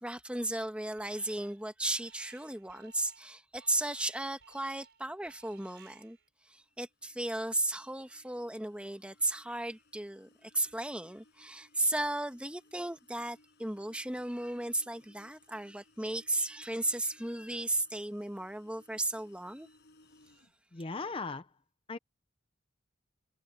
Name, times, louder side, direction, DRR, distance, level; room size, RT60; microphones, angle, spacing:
voice 1, 0.0-6.2 6.5-19.7, right 1 dB, 5° right, 1.3 m, -35 dB
Alarm, 1.0-1.6 1.8-6.3, right 7 dB, 55° right, 6.8 m, -59 dB
sound 1, 6.6-20.5, left 2 dB, 55° left, 5.9 m, -66 dB
voice 2, 20.7-21.6 21.9-22.0, left 3 dB, 25° left, 0.6 m, -38 dB
head